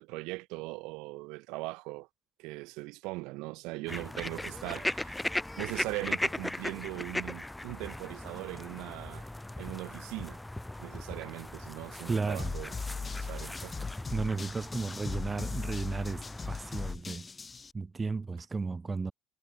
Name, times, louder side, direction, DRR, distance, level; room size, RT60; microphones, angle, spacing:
voice 1, 0.0-2.1 2.4-5.3 5.6-9.3 9.6-10.4 10.8-12.7 13.0-13.7, right 24 dB, 80° right, 3.9 m, -40 dB
sound 1, 3.9-16.9, left 1 dB, 10° left, 1.0 m, -38 dB
voice 2, 12.1-12.5 14.1-17.3 17.7-19.1, right 4 dB, 20° right, 2.6 m, -34 dB
sound 2, 12.4-17.7, left 4 dB, 25° left, 3.3 m, -38 dB
supercardioid pair, 100°, 0 cm